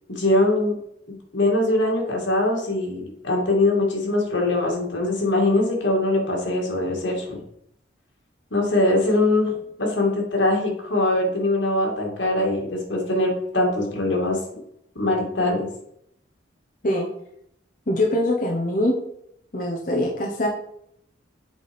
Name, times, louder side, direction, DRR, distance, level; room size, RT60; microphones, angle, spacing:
voice 1, 0.1-0.8 1.1-7.4 8.5-14.4 15.0-15.7, left 2 dB, 85° left, 0 dB, 2.5 m, -22 dB
voice 2, 17.9-19.0 19.5-20.5, left 1 dB, 45° left, 0 dB, 1.0 m, -23 dB
8.1 x 4.2 x 5.3 m, 0.73 s
head